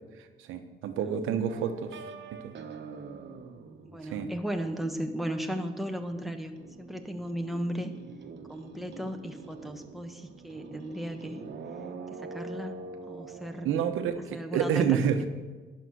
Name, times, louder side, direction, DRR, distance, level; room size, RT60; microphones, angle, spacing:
voice 1, 0.5-2.0 2.4-2.5 4.1-4.3 13.6-15.2, right 8 dB, 85° right, 8 dB, 1.1 m, -28 dB
voice 2, 1.0-1.5 3.9-6.5 6.8-7.9 8.5-11.4 12.1-13.7 14.3-15.0, equal, ahead, 4 dB, 1.2 m, -36 dB
sound 1, 1.5-5.5 5.8-14.1, right 4 dB, 65° right, 1.2 m, -45 dB
11.0 x 6.6 x 8.0 m, 1.3 s
cardioid pair, 90°, 20 cm